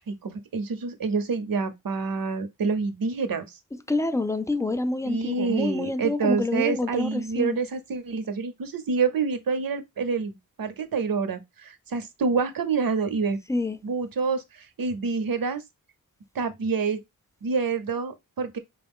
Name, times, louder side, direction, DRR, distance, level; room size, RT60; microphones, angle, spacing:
voice 1, 0.1-3.6 5.1-13.4 13.8-15.6 16.3-17.0 17.4-18.6, right 5 dB, 80° right, 0.8 m, -27 dB
voice 2, 3.7-7.6 13.5-13.8, left 2 dB, 10° left, 0.3 m, -27 dB
4.9 x 2.3 x 3.5 m
wide cardioid pair, 105°, 34 cm